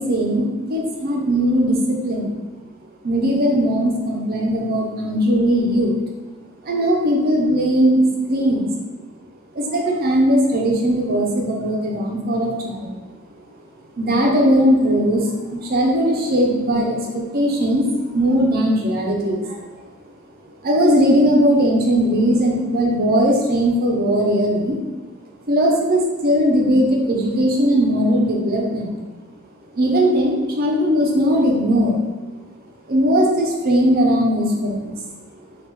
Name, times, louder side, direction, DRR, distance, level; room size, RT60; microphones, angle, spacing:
voice 1, 0.0-2.4 3.0-6.0 6.6-8.0 8.3-8.7 9.5-12.9 14.0-17.9 18.1-19.6 20.6-24.8 25.5-29.0 29.7-32.0 32.9-35.0, equal, 50° right, -1 dB, 0.6 m, -19 dB
3.1 x 2.4 x 3.3 m, 1.2 s
head